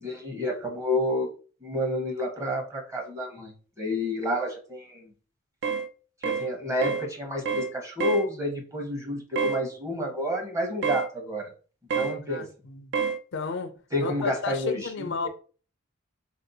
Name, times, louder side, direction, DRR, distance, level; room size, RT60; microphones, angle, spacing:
voice 1, 0.0-1.3 1.6-5.1 6.2-11.5 11.9-12.5 13.9-15.3, left 1 dB, 15° right, 0.9 m, -30 dB
sound 1, 5.6-5.9 6.2-6.5 6.8-7.1 7.5-7.7 8.0-8.3 9.4-9.6 10.8-11.1 11.9-12.2 12.9-13.2, right 6 dB, 55° right, 0.4 m, -27 dB
voice 2, 12.3-12.9 13.3-13.7 14.0-15.3, left 4 dB, 55° left, 0.4 m, -32 dB
4.1 x 2.7 x 4.0 m
head